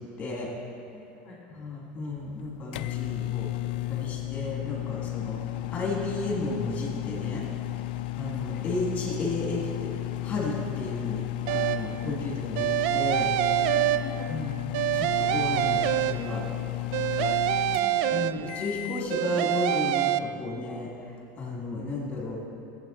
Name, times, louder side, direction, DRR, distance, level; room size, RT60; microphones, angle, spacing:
voice 1, 0.2-0.5 1.5-3.5 3.9-7.5 8.1-11.2 11.5-12.7 12.9-13.3 14.3-14.5 14.9-16.4 18.1-22.4, left 2 dB, 25° left, -3 dB, 3.4 m, -33 dB
voice 2, 0.9-1.4 8.3-8.7 12.0-12.1 13.7-14.4 14.9-15.0 17.5-18.6 18.9-19.3 20.2-20.3, equal, 10° left, -10 dB, 2.4 m, -46 dB
sound 1, 2.2-19.1, left 16 dB, 80° left, 0.4 m, -34 dB
sound 2, 11.5-12.0 12.6-14.4 14.7-16.5 16.9-18.7 19.1-20.2, right 12 dB, 70° right, 0.4 m, -26 dB
16.0 x 8.6 x 4.5 m, 2.7 s
supercardioid pair, 130°, 5 cm